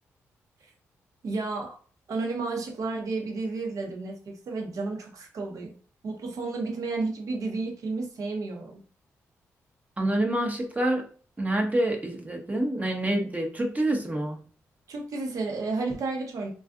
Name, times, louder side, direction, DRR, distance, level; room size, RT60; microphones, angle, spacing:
voice 1, 1.2-1.8 2.1-5.8 6.0-8.8 14.9-16.5, right 3 dB, 65° right, 0.8 m, -32 dB
voice 2, 10.0-11.1 11.4-14.4, right 1 dB, 25° right, 0.7 m, -27 dB
2.5 x 2.3 x 2.4 m
hypercardioid pair, 45°, 6 cm